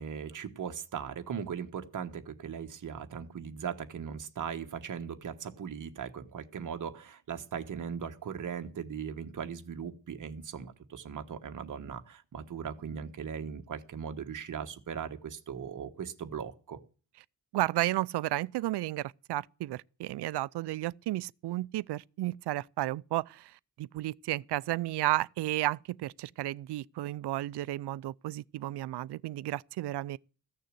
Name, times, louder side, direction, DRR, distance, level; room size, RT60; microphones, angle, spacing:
voice 1, 0.0-16.8, right 7 dB, 45° right, 1.3 m, -39 dB
voice 2, 17.5-30.2, right 16 dB, 70° right, 0.5 m, -33 dB
15.0 x 6.7 x 7.6 m
wide cardioid pair, 155°, 42 cm